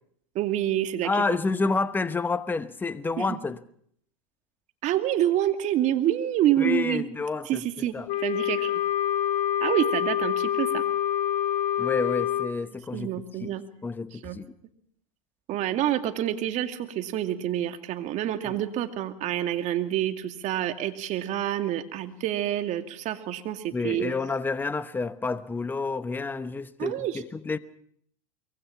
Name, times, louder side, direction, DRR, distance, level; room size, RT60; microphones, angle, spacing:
voice 1, 0.3-1.4 3.2-3.3 4.8-7.0 7.5-8.0 8.2-8.8 9.6-10.8 12.9-13.6 14.2-14.4 15.5-24.1 26.8-27.2, right 12 dB, 40° right, 2.4 m, -27 dB
voice 2, 1.0-3.6 6.6-8.1 11.8-13.1 13.4-13.5 13.8-14.5 18.5-18.6 23.7-27.6, left 4 dB, 10° left, 1.0 m, -29 dB
Wind instrument woodwind instrument, 8.1-12.5, left 11 dB, 45° left, 1.4 m, -26 dB
24.5 x 23.0 x 5.8 m
hypercardioid pair, 110°, 18 cm